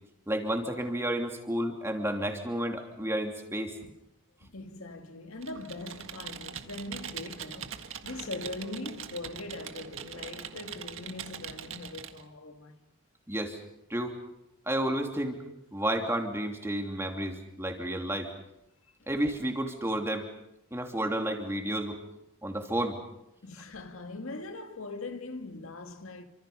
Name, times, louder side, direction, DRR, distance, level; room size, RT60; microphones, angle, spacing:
voice 1, 0.3-3.8 13.3-13.6 13.9-14.2 14.7-15.4 15.7-18.3 19.1-20.3 20.7-22.0 22.4-23.0, right 1 dB, 10° right, 2.9 m, -31 dB
voice 2, 4.4-12.8 19.0-19.1 23.4-26.2, left 2 dB, 80° left, 2.0 m, -41 dB
Computer keyboard, 5.4-12.2, right 7 dB, 70° right, 1.7 m, -42 dB
29.0 x 26.0 x 5.6 m
head